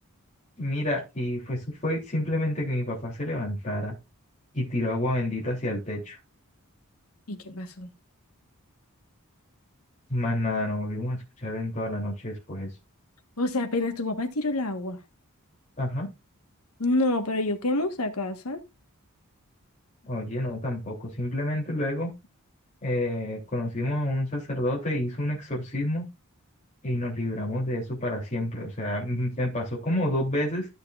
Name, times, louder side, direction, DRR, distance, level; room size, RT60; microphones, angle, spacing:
voice 1, 0.6-3.9 4.5-6.2 10.1-12.7 15.8-16.1 20.1-22.1 22.8-26.0 26.8-30.7, left 1 dB, 30° left, 3.0 m, -29 dB
voice 2, 7.3-7.9 13.4-15.0 16.8-18.6, left 2 dB, 80° left, 1.4 m, -27 dB
13.0 x 6.6 x 2.4 m
head